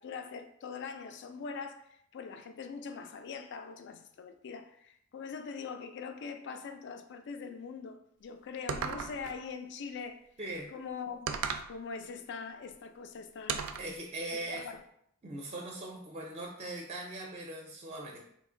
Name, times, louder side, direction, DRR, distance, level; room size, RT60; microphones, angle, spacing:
voice 1, 0.0-10.2 10.7-11.3 11.7-13.7 14.5-14.8, left 5 dB, 55° left, 0.4 m, -42 dB
sound 1, 8.7-9.4 11.3-11.7 13.5-13.9, right 6 dB, 90° right, 0.3 m, -35 dB
voice 2, 10.4-10.7 13.8-14.7 15.2-18.2, right 2 dB, 30° right, 0.5 m, -40 dB
2.9 x 2.4 x 3.7 m
head